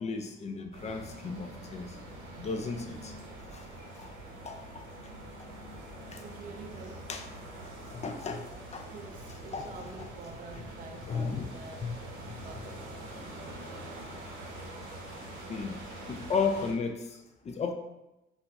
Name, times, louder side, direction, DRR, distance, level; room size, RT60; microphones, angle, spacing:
voice 1, 0.0-1.9 2.4-3.1 3.5-3.7 4.0-4.1 4.4-4.9 6.1-6.2 7.1-7.2 7.9-8.5 8.7-8.9 9.5-9.7 11.0-11.5 11.8-11.9 15.5-15.7 16.1-17.2 17.4-17.7, left 5 dB, 35° left, 5 dB, 0.4 m, -34 dB
sound 1, 0.7-16.7, right 1 dB, 85° right, 0.9 m, -45 dB
voice 2, 3.5-4.0 4.4-4.8 6.2-7.0 8.9-11.8 12.2-14.1 15.0-16.0 16.3-16.4, right 4 dB, 45° right, 4 dB, 0.4 m, -49 dB
2.3 x 2.3 x 4.0 m, 0.97 s
cardioid pair, 90°, 20 cm